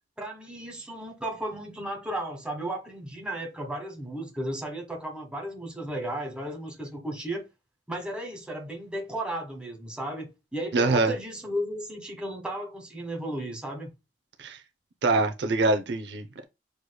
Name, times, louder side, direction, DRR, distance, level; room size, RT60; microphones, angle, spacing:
voice 1, 0.2-7.5 7.9-13.9, right 1 dB, 5° right, 1.4 m, -34 dB
voice 2, 10.7-11.1 14.4-14.6 15.0-16.4, right 3 dB, 70° right, 0.6 m, -24 dB
6.5 x 3.1 x 2.2 m
head